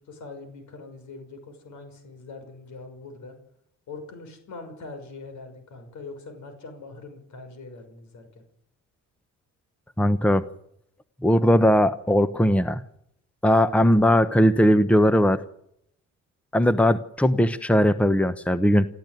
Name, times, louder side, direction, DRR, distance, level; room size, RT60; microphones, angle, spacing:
voice 1, 0.0-3.3 3.9-8.4, left 3 dB, 75° left, 6 dB, 6.0 m, -42 dB
voice 2, 10.0-10.4 11.2-12.8 13.4-15.4 16.5-18.9, equal, 5° left, 12 dB, 1.1 m, -19 dB
28.0 x 14.0 x 9.3 m, 0.76 s
cardioid pair, 90°, 30 cm